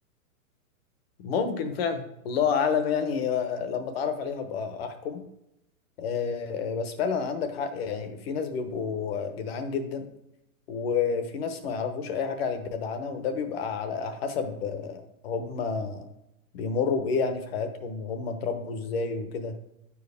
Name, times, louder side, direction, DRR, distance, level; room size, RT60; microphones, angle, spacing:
voice 1, 1.2-5.2 6.0-10.1 10.7-16.1 16.5-19.6, left 6 dB, 45° left, 8 dB, 1.0 m, -29 dB
8.9 x 4.8 x 3.4 m, 0.86 s
hypercardioid pair, 155°, 43 cm